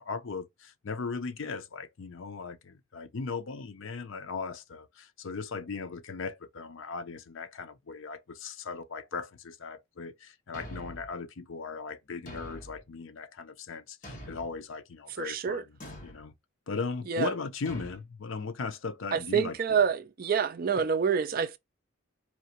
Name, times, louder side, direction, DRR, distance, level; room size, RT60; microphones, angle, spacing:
voice 1, 0.0-15.6 16.0-16.3 16.7-19.8, left 4 dB, 65° left, 0.6 m, -38 dB
Thump thud, 10.5-11.2 12.3-12.8 14.0-14.6 15.8-16.2 17.7-18.0, equal, 35° left, 1.4 m, -44 dB
voice 2, 15.2-15.6 17.1-17.3 19.1-21.6, right 6 dB, 40° right, 0.4 m, -27 dB
4.4 x 2.9 x 2.9 m
head